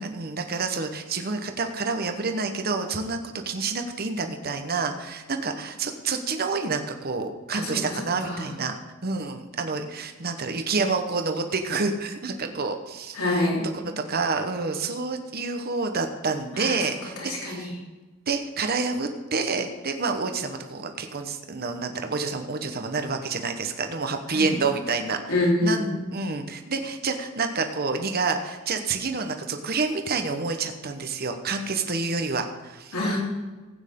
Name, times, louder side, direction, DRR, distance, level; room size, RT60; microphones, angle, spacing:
voice 1, 0.0-8.8 9.0-17.7 18.3-25.2 25.6-33.0, right 4 dB, 45° right, 6 dB, 1.0 m, -28 dB
voice 2, 13.1-13.7 16.5-16.8 17.2-17.7 24.3-24.5 25.3-26.0 32.9-33.2, left 1 dB, 75° left, -4 dB, 3.9 m, -26 dB
16.0 x 9.0 x 3.7 m, 1.3 s
head